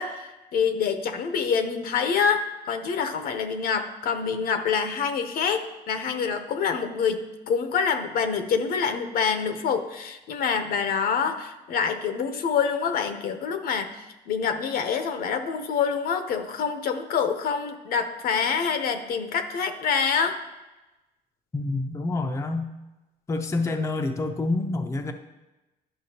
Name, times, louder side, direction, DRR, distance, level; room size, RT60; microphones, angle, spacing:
voice 1, 0.0-20.4, left 6 dB, 60° left, 7 dB, 0.7 m, -26 dB
voice 2, 21.5-22.7 23.3-25.1, left 2 dB, 15° left, 5 dB, 0.5 m, -27 dB
11.0 x 5.8 x 2.8 m, 1.0 s
cardioid pair, 110°, 17 cm